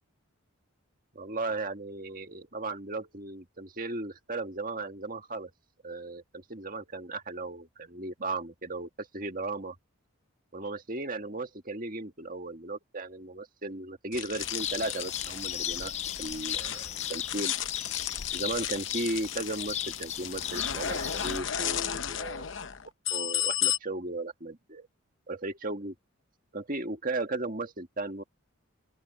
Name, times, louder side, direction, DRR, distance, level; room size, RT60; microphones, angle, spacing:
voice 1, 1.1-5.5 5.8-9.8 10.5-15.9 16.2-17.5 18.3-22.5 23.1-24.9 25.3-25.9 26.5-28.2, right 2 dB, 40° right, 1.8 m, -36 dB
sound 1, 14.1-23.8, left 10 dB, 60° left, 0.9 m, -34 dB
sound 2, 14.4-21.4, left 10 dB, 30° left, 0.3 m, -36 dB
open air
head